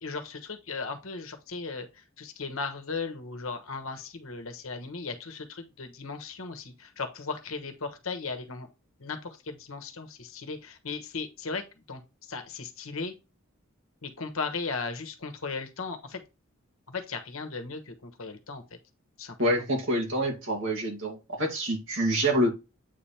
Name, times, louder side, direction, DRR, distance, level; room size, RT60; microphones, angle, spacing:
voice 1, 0.0-1.9 2.2-8.7 9.0-11.6 11.9-12.0 12.3-13.1 14.0-16.2 16.9-18.6 19.2-19.6, left 4 dB, 75° left, 1.3 m, -36 dB
voice 2, 19.4-22.5, right 1 dB, 65° right, 2.4 m, -27 dB
8.3 x 3.4 x 4.3 m
head